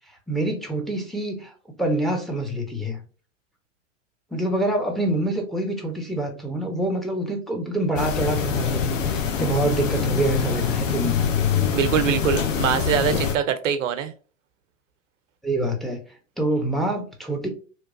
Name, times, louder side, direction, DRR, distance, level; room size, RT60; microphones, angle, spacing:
voice 1, 0.3-3.0 4.3-11.1 13.1-13.2 15.4-16.0 16.4-17.5, right 1 dB, ahead, 3 dB, 0.6 m, -26 dB
lino silence, 8.0-13.4, left 7 dB, 75° left, 0.7 m, -24 dB
voice 2, 11.7-14.1, right 8 dB, 75° right, 9 dB, 0.6 m, -23 dB
2.9 x 2.3 x 2.5 m, 0.37 s
hypercardioid pair, 95°, 38 cm